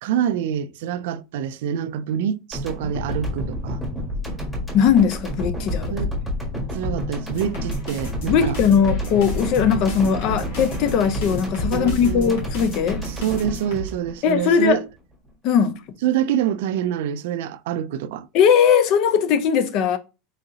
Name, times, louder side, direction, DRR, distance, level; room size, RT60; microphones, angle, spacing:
voice 1, 0.0-3.8 5.9-6.1 6.7-8.6 9.6-9.7 11.7-12.4 13.0-14.8 16.0-18.3, right 9 dB, 80° right, 0.3 m, -26 dB
sound 1, 2.5-14.7, left 1 dB, 10° left, 1.5 m, -29 dB
voice 2, 4.7-5.9 8.3-13.0 14.2-14.8 15.4-15.7 18.3-20.0, left 7 dB, 50° left, 0.5 m, -19 dB
sound 2, 7.3-13.9, equal, 75° left, 1.9 m, -34 dB
3.9 x 3.7 x 2.7 m
supercardioid pair, 150°, 0 cm